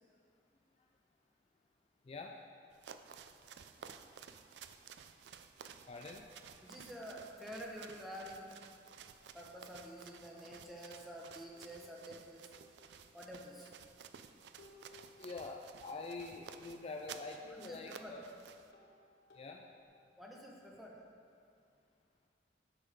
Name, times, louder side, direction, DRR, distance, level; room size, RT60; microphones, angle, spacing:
sound 1, 2.7-18.7, right 7 dB, 65° right, 0.4 m, -55 dB
sound 2, 4.9-6.7 9.8-10.0 10.3-10.5 11.5-13.5 14.6-17.5 17.9-19.9, left 2 dB, 75° left, 1.0 m, -66 dB
voice 1, 5.9-6.3 15.2-18.2 19.3-19.6, left 3 dB, 35° left, 2 dB, 0.4 m, -45 dB
voice 2, 6.6-8.5 9.3-12.5 13.1-13.7 17.5-18.2 20.2-21.1, equal, ahead, -2 dB, 0.9 m, -49 dB
9.7 x 6.3 x 3.6 m, 2.4 s
head